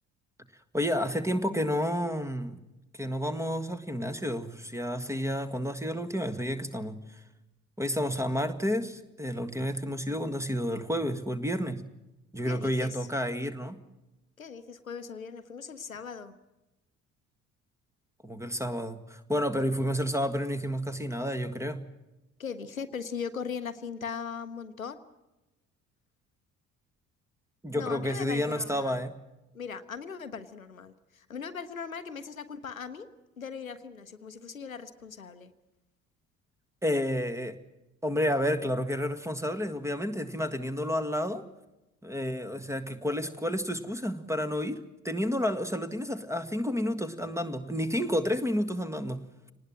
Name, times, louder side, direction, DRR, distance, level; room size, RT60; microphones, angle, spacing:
voice 1, 0.7-2.6 2.9-7.2 7.8-11.8 12.3-13.8 18.2-21.8 27.6-29.1 36.8-37.6 38.0-41.4 42.0-49.2, equal, 5° right, 11 dB, 1.8 m, -30 dB
voice 2, 12.4-13.1 14.4-16.4 22.4-25.0 27.7-29.1 29.5-33.1 33.4-35.5, left 6 dB, 90° left, 11 dB, 0.8 m, -39 dB
24.5 x 19.5 x 7.6 m, 0.98 s
figure-of-eight pair, 50°, 40 cm